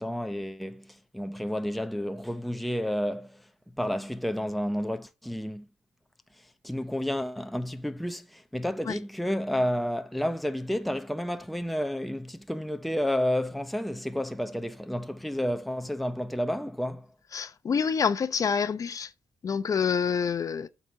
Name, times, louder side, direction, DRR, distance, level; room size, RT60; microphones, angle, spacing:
voice 1, 0.0-3.4 3.8-5.7 6.4-17.1, equal, ahead, 0.7 m, -31 dB
voice 2, 17.3-19.1 19.4-20.7, left 6 dB, 45° left, 0.8 m, -27 dB
7.9 x 4.1 x 6.8 m
cardioid pair, 75°, 8 cm